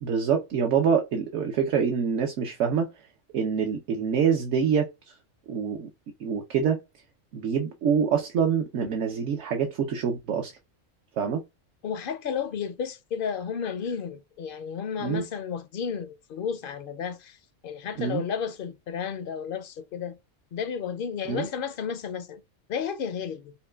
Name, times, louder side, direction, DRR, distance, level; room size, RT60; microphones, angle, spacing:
voice 1, 0.0-2.9 3.3-4.9 5.5-5.9 6.2-6.8 7.3-10.5 11.2-11.4 15.0-15.2 18.0-18.2 21.2-21.5, right 7 dB, 70° right, 1.0 m, -25 dB
voice 2, 11.8-17.4 17.6-20.2 20.5-22.4 22.7-23.5, left 7 dB, 60° left, 0.6 m, -32 dB
5.6 x 2.2 x 2.2 m
omnidirectional pair, 1.3 m